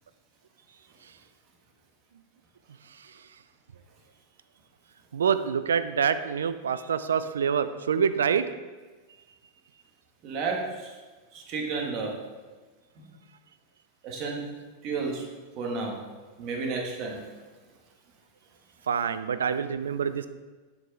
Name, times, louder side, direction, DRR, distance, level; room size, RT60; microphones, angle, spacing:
voice 1, 5.1-8.4 18.9-20.3, right 7 dB, 80° right, 11 dB, 0.4 m, -26 dB
voice 2, 10.2-10.9 11.3-12.2 13.0-13.1 14.0-14.5 14.8-15.2 15.5-16.0 16.4-17.2, right 4 dB, 45° right, 0 dB, 1.7 m, -32 dB
6.4 x 4.9 x 4.7 m, 1.3 s
hypercardioid pair, 95°, 0 cm